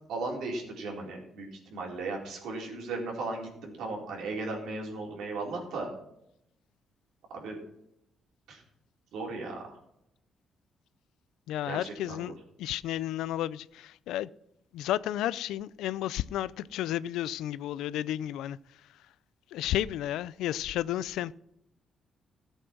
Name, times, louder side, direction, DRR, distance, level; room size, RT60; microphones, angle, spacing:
voice 1, 0.1-5.9 7.3-7.6 8.5-8.6 9.1-9.8 11.6-12.2, right 3 dB, 80° right, 4.3 m, -36 dB
voice 2, 11.5-14.3 14.7-18.6 19.5-21.3, left 13 dB, 90° left, 0.4 m, -32 dB
15.0 x 8.1 x 6.1 m
cardioid pair, 90°, 0 cm